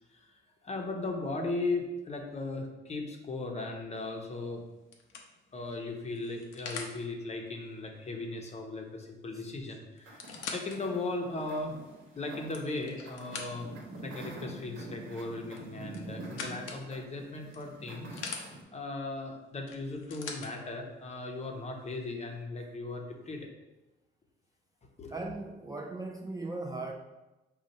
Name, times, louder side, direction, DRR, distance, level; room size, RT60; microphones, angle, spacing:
voice 1, 0.6-4.6 5.5-10.2 10.5-11.8 12.2-13.7 14.0-18.2 18.7-23.5 25.0-25.3, left 2 dB, 35° left, 2 dB, 0.8 m, -37 dB
sound 1, 4.0-4.3 4.9-7.0 9.0-9.1 9.4-9.5 10.0-10.8 11.4-11.5 12.2-13.8 15.5-16.8 17.5-18.4 19.7-20.5 21.4-21.5, left 5 dB, 85° left, 0.7 m, -43 dB
sound 2, 10.0-18.6, right 2 dB, 80° right, 1.1 m, -46 dB
voice 2, 25.1-26.9, right 2 dB, 20° right, 1 dB, 0.4 m, -38 dB
5.2 x 2.4 x 4.2 m, 1.1 s
cardioid pair, 90°, 20 cm